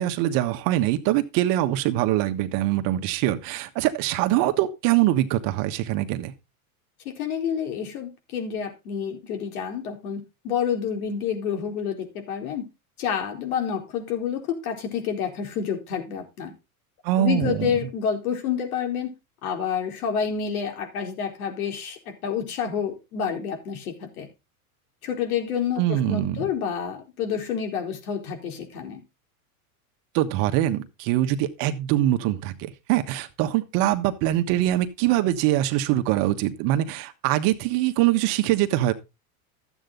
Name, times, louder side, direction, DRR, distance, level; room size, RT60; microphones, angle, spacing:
voice 1, 0.0-6.3 17.0-17.7 25.8-26.5 30.1-38.9, right 14 dB, 50° right, 1.4 m, -23 dB
voice 2, 7.0-12.6 13.0-16.5 17.2-19.1 19.4-24.3 25.0-29.0, left 7 dB, 75° left, 4.3 m, -29 dB
12.5 x 8.3 x 3.9 m
supercardioid pair, 135°, 44 cm